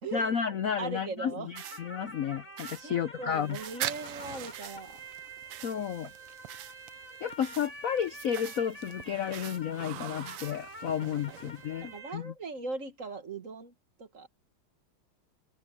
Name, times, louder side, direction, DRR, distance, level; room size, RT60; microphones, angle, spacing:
voice 1, 0.1-3.6 5.6-6.1 7.2-12.3, left 8 dB, 80° left, 0.7 m, -32 dB
voice 2, 0.8-1.5 1.8-1.9 2.8-5.0 11.0-11.4 11.8-13.7 14.0-14.3, right 3 dB, 40° right, 1.9 m, -39 dB
sound 1, 1.5-12.2, right 1 dB, 15° right, 6.5 m, -48 dB
sound 2, 1.6-1.8 2.6-2.8 3.5-3.8 4.5-4.8 5.5-5.8 6.5-6.8 7.4-7.7 8.3-8.6 9.3-9.6 10.3-10.6, right 12 dB, 70° right, 1.4 m, -45 dB
sound 3, 3.3-12.0, right 14 dB, 90° right, 1.7 m, -44 dB
omnidirectional pair, 2.4 m